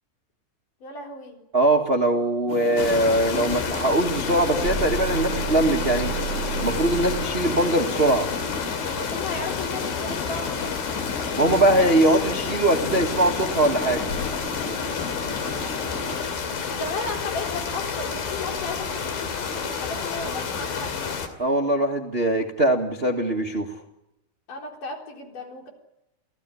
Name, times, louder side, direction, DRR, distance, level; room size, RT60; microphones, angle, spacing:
voice 1, 0.8-1.4 9.0-10.7 15.6-16.3 16.7-21.1 24.5-25.7, left 3 dB, 60° left, 2 dB, 5.5 m, -35 dB
voice 2, 1.5-6.1 6.6-8.3 11.3-14.0 21.4-23.7, right 1 dB, 25° right, 4 dB, 1.3 m, -21 dB
sound 1, 2.5-16.2, left 3 dB, 25° left, 2.6 m, -35 dB
sound 2, 2.8-21.3, left 6 dB, 80° left, 4.4 m, -30 dB
sound 3, 4.6-7.4, right 11 dB, 50° right, 1.0 m, -31 dB
30.0 x 17.0 x 9.9 m, 0.92 s
omnidirectional pair, 4.1 m